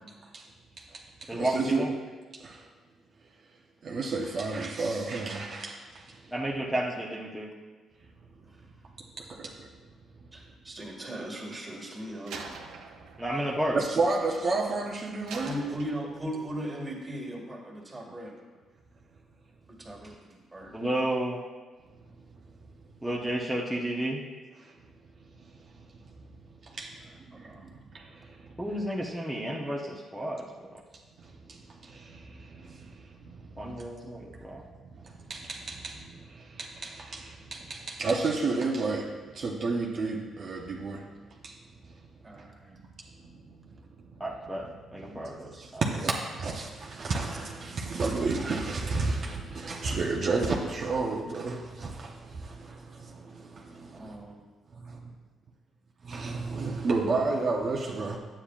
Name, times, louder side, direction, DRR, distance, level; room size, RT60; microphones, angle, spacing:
voice 1, 0.8-1.8 2.3-2.7 3.8-6.3 9.2-9.7 13.7-15.5 24.6-24.7 25.5-26.3 26.6-28.5 31.2-33.8 34.9-41.1 41.4-41.6 41.8-41.9 42.4-42.5 43.2-43.8 44.1-44.2 45.1-54.2 54.8-54.9 56.0-58.2, right 3 dB, 55° right, -1 dB, 0.9 m, -32 dB
voice 2, 1.3-2.0 6.3-7.5 13.2-13.8 20.7-21.4 23.0-24.2 28.6-30.7 33.6-34.6 44.2-45.8, right 1 dB, 5° right, -5 dB, 1.0 m, -32 dB
voice 3, 10.3-12.5 15.4-18.4 19.7-20.7 27.3-27.6 42.2-42.8 53.9-54.4, equal, 20° right, -1 dB, 2.0 m, -38 dB
Slam, 12.3-14.7 15.3-16.5, right 4 dB, 85° right, 0.8 m, -45 dB
9.8 x 8.7 x 2.5 m, 1.4 s
cardioid pair, 90°, 0 cm